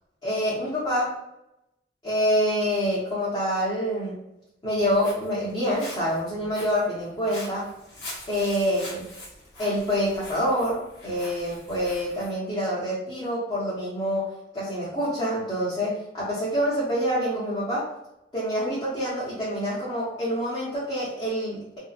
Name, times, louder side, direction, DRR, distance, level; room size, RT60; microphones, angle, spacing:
voice 1, 0.2-1.2 2.0-4.2 4.6-7.7 8.3-9.1 9.6-17.9 18.3-21.8, equal, 25° left, -10 dB, 0.8 m, -26 dB
Walk footsteps, 4.7-12.3, left 1 dB, 70° left, 1.0 m, -43 dB
2.7 x 2.1 x 2.4 m, 0.89 s
head